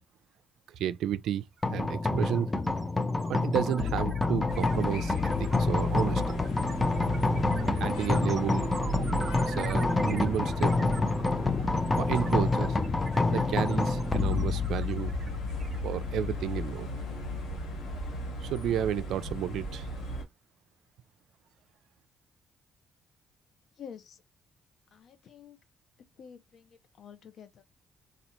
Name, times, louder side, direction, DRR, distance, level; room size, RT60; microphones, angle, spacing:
voice 1, 0.8-1.4 1.7-2.5 3.3-6.4 7.7-8.7 9.5-10.9 12.0-12.8 13.3-15.1 15.8-16.9 18.4-19.9, right 10 dB, 80° right, 0.4 m, -32 dB
sound 1, 1.6-18.8, left 3 dB, 20° left, 0.6 m, -29 dB
sound 2, 1.6-1.7 2.0-16.4, right 5 dB, 40° right, 0.7 m, -46 dB
sound 3, 4.5-20.2, right 1 dB, 85° left, 1.2 m, -37 dB
voice 2, 23.8-24.2 24.9-25.6 26.2-27.6, left 7 dB, 65° left, 0.7 m, -49 dB
4.2 x 2.4 x 2.9 m
cardioid pair, 90°, 0 cm